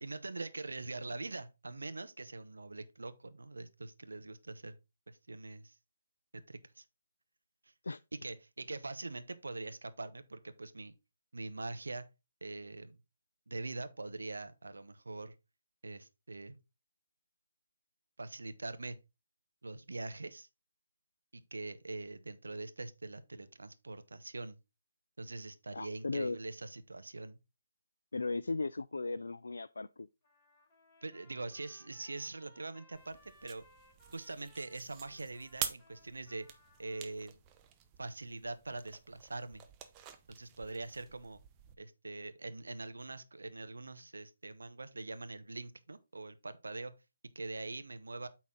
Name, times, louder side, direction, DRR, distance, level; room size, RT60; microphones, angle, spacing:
voice 1, 0.0-4.8 5.1-5.7 6.3-6.8 8.1-10.9 11.3-12.1 12.4-13.0 13.5-15.3 15.8-16.6 18.2-19.0 19.6-20.5 21.3-24.6 25.2-27.4 31.0-33.6 34.1-36.5 36.8-37.3 38.0-39.6 40.3-41.4 41.8-46.9 47.3-48.3, right 2 dB, 75° right, 0.8 m, -43 dB
voice 2, 25.7-26.4 28.1-30.1, left 3 dB, 75° left, 0.3 m, -36 dB
Trumpet, 30.2-37.1, left 1 dB, 15° left, 3.7 m, -65 dB
sound 1, 32.9-41.8, right 9 dB, 20° right, 0.7 m, -47 dB
8.4 x 4.1 x 3.7 m
figure-of-eight pair, 145°, 0 cm